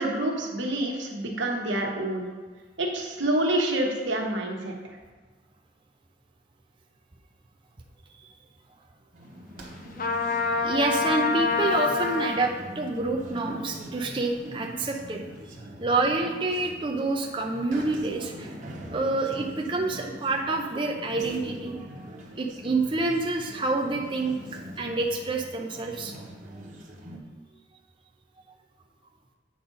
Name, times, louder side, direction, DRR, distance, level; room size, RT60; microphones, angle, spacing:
voice 1, 0.0-2.3 2.8-4.7, right 1 dB, 90° right, 0 dB, 1.3 m, -27 dB
sound 1, 9.1-27.2, equal, 45° right, 1.1 m, -42 dB
Trumpet, 10.0-12.5, left 4 dB, 45° left, 0.6 m, -26 dB
voice 2, 10.6-15.2 15.8-18.6 18.9-22.1 22.4-24.4 24.8-26.1, right 2 dB, 25° right, 1 dB, 0.5 m, -27 dB
8.6 x 5.1 x 4.0 m, 1.4 s
head